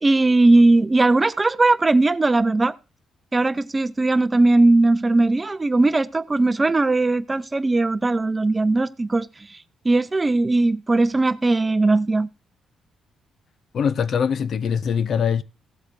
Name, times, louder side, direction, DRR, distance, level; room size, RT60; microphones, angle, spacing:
voice 1, 0.0-2.7 3.3-9.3 9.8-12.3, right 2 dB, 20° right, 0.5 m, -18 dB
voice 2, 13.7-15.4, left 7 dB, 55° left, 0.5 m, -22 dB
16.0 x 7.9 x 2.6 m
cardioid pair, 90°, 0 cm